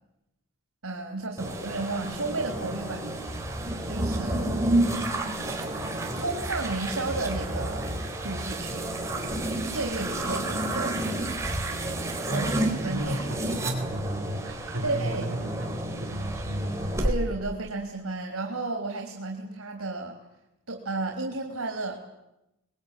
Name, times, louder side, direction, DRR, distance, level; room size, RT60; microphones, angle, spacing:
voice 1, 0.8-3.1 3.8-4.9 6.1-7.9 8.2-8.9 9.6-11.0 12.3-12.5 12.8-13.2 14.8-15.3 17.0-20.2 20.7-22.0, right 3 dB, 85° right, 2 dB, 3.8 m, -33 dB
sound 1, 1.4-17.1, right 1 dB, 15° right, 4.0 m, -30 dB
voice 2, 4.8-5.2 11.8-11.9 12.2-17.0, equal, 70° right, 1 dB, 4.8 m, -33 dB
25.0 x 22.0 x 9.3 m, 0.93 s
head